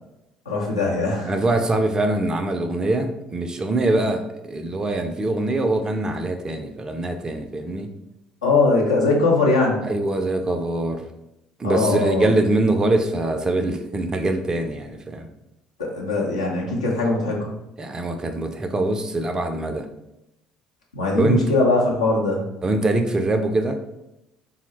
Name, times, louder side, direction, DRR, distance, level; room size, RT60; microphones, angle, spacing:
voice 1, 0.5-1.3 8.4-9.8 11.6-12.3 15.8-17.5 20.9-22.4, left 3 dB, 80° left, -3 dB, 0.7 m, -21 dB
voice 2, 1.2-4.2 4.5-7.9 9.8-11.1 11.6-15.3 17.8-19.9 21.1-21.5 22.6-23.8, right 2 dB, 20° right, 5 dB, 0.4 m, -23 dB
3.6 x 2.0 x 3.1 m, 0.89 s
figure-of-eight pair, 55°, 3 cm